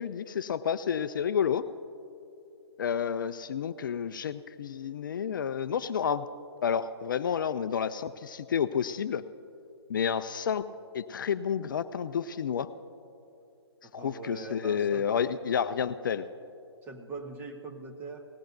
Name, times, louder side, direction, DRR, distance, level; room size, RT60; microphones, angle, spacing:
voice 1, 0.0-1.7 2.8-6.3 6.6-9.2 9.9-10.6 10.9-12.7 13.9-16.2, left 7 dB, 50° left, 13 dB, 0.4 m, -30 dB
voice 2, 13.8-15.1 16.8-18.3, right 3 dB, 15° right, 3 dB, 1.0 m, -42 dB
19.0 x 16.0 x 2.6 m, 2.7 s
figure-of-eight pair, 135°, 14 cm